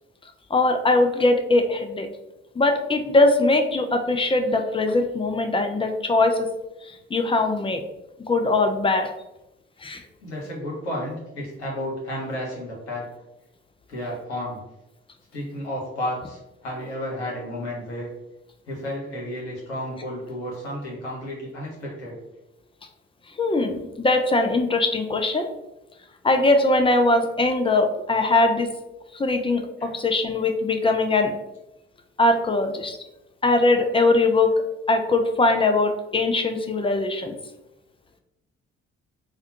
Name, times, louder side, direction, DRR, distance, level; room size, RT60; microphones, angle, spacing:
voice 1, 0.5-2.1 2.6-6.5 7.1-7.8 8.3-9.1 9.8-10.0 23.4-25.5 26.2-28.7 29.1-31.3 32.2-33.0 33.4-34.5 34.9-37.4, left 2 dB, 15° left, 5 dB, 0.4 m, -21 dB
voice 2, 10.2-13.0 13.9-14.6 15.3-18.1 18.7-22.1 29.8-29.9, left 1 dB, 80° left, -4 dB, 1.0 m, -32 dB
3.5 x 2.2 x 2.8 m, 0.94 s
figure-of-eight pair, 40°, 34 cm